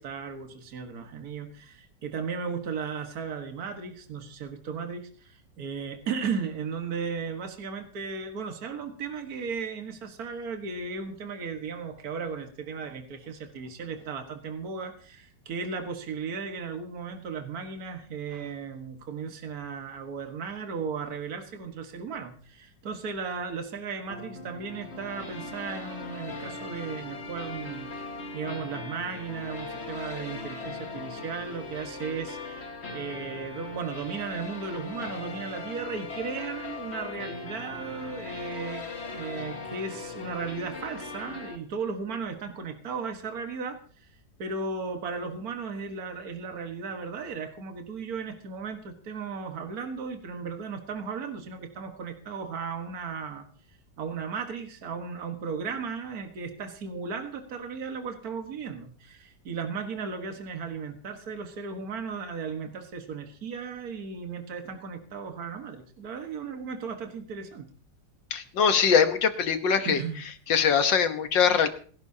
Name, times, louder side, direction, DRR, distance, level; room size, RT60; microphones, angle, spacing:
voice 1, 0.0-43.8 44.4-53.5 54.0-67.7 69.8-70.2, right 5 dB, 55° right, 5 dB, 1.9 m, -36 dB
sound 1, 24.1-41.6, left 3 dB, 40° left, 1.8 m, -39 dB
voice 2, 68.3-70.0 70.5-71.7, left 6 dB, 80° left, 8 dB, 1.9 m, -22 dB
28.0 x 11.5 x 2.8 m, 0.44 s
omnidirectional pair, 2.0 m